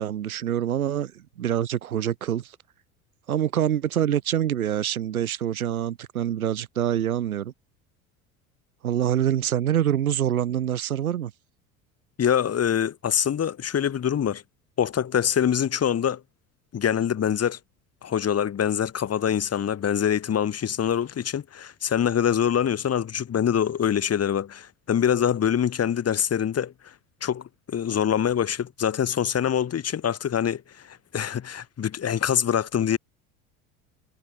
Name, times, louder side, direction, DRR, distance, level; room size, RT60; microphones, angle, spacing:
voice 1, 0.0-2.5 3.3-7.5 8.8-11.3, right 10 dB, 75° right, 3.2 m, -25 dB
voice 2, 12.2-14.4 14.8-16.2 16.7-17.6 18.0-26.9 27.2-33.0, left 9 dB, 35° left, 6.9 m, -24 dB
figure-of-eight pair, 70°, 43 cm